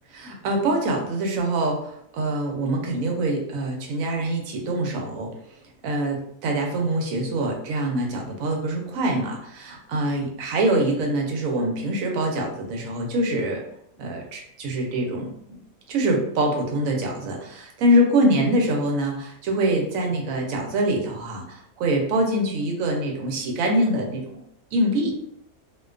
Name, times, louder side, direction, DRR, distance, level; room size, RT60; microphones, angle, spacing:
voice 1, 0.1-5.3 5.8-13.6 14.0-15.6 15.9-24.4 24.7-25.1, right 1 dB, 75° right, 1 dB, 1.0 m, -24 dB
2.5 x 2.2 x 2.4 m, 0.71 s
omnidirectional pair, 1.5 m